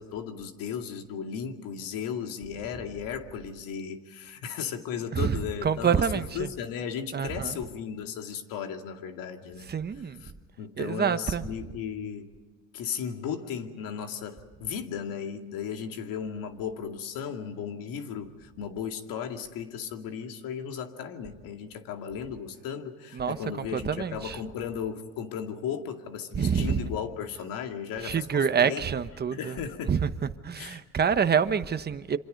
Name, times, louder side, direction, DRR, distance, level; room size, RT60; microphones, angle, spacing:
voice 1, 0.0-9.7 10.2-10.3 10.6-12.3 12.7-28.8 29.3-29.9 30.6-30.8, left 7 dB, 80° left, 2.4 m, -35 dB
voice 2, 5.1-6.5 7.1-7.6 9.7-10.3 10.8-11.4 23.1-23.4 23.7-24.4 26.3-26.8 28.0-29.6 29.9-30.1 30.4-32.2, right 7 dB, 30° right, 1.1 m, -27 dB
27.5 x 25.5 x 5.4 m
cardioid pair, 110°, 34 cm